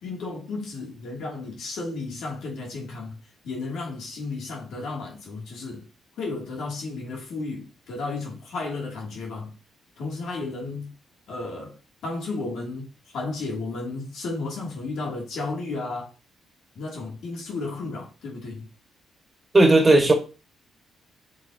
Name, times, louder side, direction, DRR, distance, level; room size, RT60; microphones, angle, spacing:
voice 1, 0.0-3.2 3.4-5.9 6.2-9.5 10.0-10.9 11.3-11.8 12.0-16.1 16.7-18.7, left 3 dB, 75° left, 2.9 m, -33 dB
voice 2, 19.5-20.1, right 2 dB, 20° right, 2.0 m, -15 dB
7.7 x 5.6 x 3.0 m
cardioid pair, 90°, 0 cm